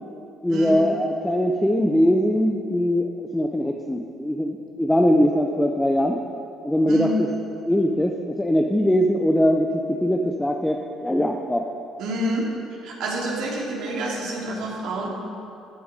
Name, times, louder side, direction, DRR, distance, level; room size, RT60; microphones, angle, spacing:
voice 1, 0.4-6.2 6.6-7.3 7.6-11.6, equal, 5° left, 2 dB, 0.6 m, -21 dB
voice 2, 12.0-12.5 12.8-15.1, right 1 dB, 75° right, -3 dB, 3.1 m, -28 dB
15.5 x 10.0 x 5.2 m, 2.7 s
cardioid pair, 145°, 0 cm